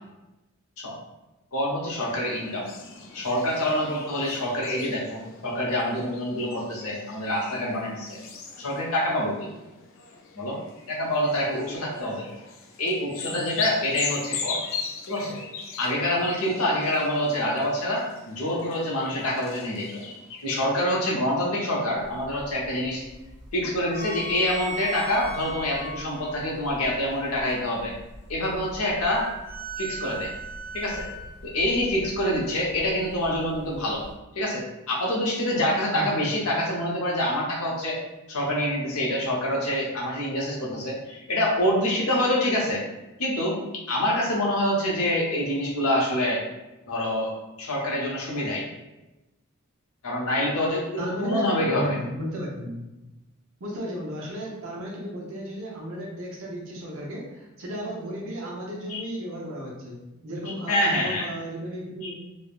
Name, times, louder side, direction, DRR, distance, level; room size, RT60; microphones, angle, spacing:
voice 1, 1.5-2.7 3.1-8.2 8.6-9.5 10.3-10.6 10.9-12.3 12.8-14.6 15.1-15.4 15.8-20.0 20.4-23.0 23.5-27.9 28.3-29.3 29.8-30.3 30.7-31.1 31.4-34.0 34.3-38.0 38.3-42.8 43.2-43.6 43.9-46.4 46.9-47.3 47.6-48.6 50.0-52.0 58.9-59.0 60.7-61.3 62.0-62.1, left 1 dB, 85° left, -2 dB, 0.8 m, -26 dB
sound 1, 1.9-20.6, left 5 dB, 60° left, 0.4 m, -39 dB
sound 2, 22.0-34.1, right 2 dB, 35° right, 1.2 m, -39 dB
voice 2, 35.9-36.3 51.0-51.4 51.7-52.9 53.6-60.0 60.2-62.2, equal, 70° right, -3 dB, 0.8 m, -34 dB
3.2 x 2.1 x 2.4 m, 1.0 s
head